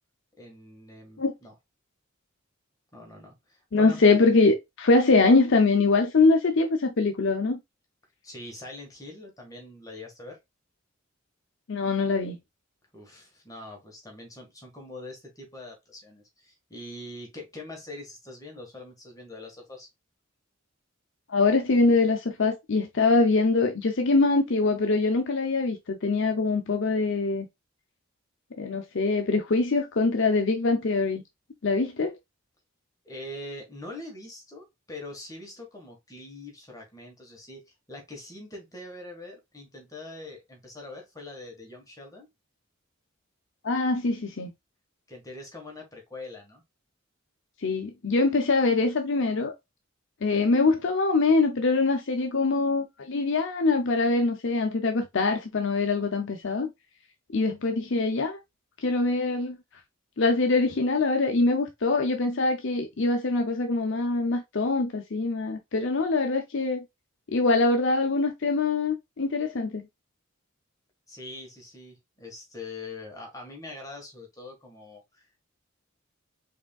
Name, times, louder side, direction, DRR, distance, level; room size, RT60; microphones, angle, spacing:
voice 1, 0.4-1.5 2.9-4.0 8.2-10.4 12.9-19.9 33.0-42.3 45.1-46.6 71.1-75.4, left 2 dB, 15° left, 1.6 m, -43 dB
voice 2, 3.7-7.6 11.7-12.4 21.3-27.5 28.6-31.2 31.6-32.2 43.6-44.5 47.6-49.5 50.2-56.7 57.3-58.4 58.8-59.6 60.2-66.8 67.3-69.8, left 3 dB, 60° left, 0.7 m, -23 dB
4.9 x 3.5 x 2.3 m
head